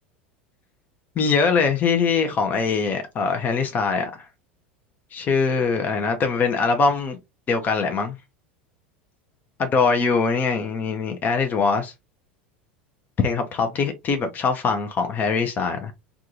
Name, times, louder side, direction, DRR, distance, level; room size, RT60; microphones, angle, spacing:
voice 1, 1.2-4.3 5.1-7.2 7.5-8.1 9.6-11.9 13.2-15.9, left 5 dB, 35° left, 0.7 m, -22 dB
3.6 x 2.4 x 2.7 m
figure-of-eight pair, 80°, 6 cm